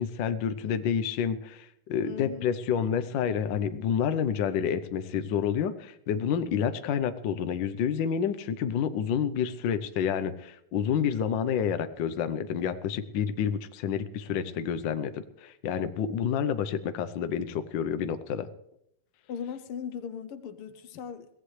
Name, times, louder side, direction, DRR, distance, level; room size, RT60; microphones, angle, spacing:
voice 1, 0.0-18.5, left 8 dB, 65° left, 10 dB, 1.4 m, -29 dB
voice 2, 2.0-2.5 19.3-21.3, left 7 dB, 85° left, 11 dB, 1.9 m, -38 dB
22.5 x 17.0 x 3.3 m, 0.76 s
omnidirectional pair, 2.4 m